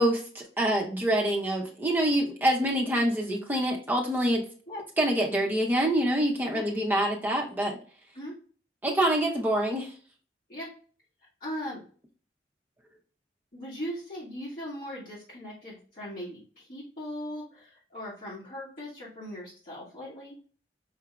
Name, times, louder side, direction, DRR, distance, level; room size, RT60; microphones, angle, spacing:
voice 1, 0.0-4.4 5.0-7.8 8.8-9.9, right 1 dB, 10° right, -1 dB, 0.7 m, -26 dB
voice 2, 11.4-11.8 13.5-20.4, equal, 50° left, -10 dB, 1.8 m, -39 dB
5.8 x 2.6 x 2.3 m, 0.41 s
head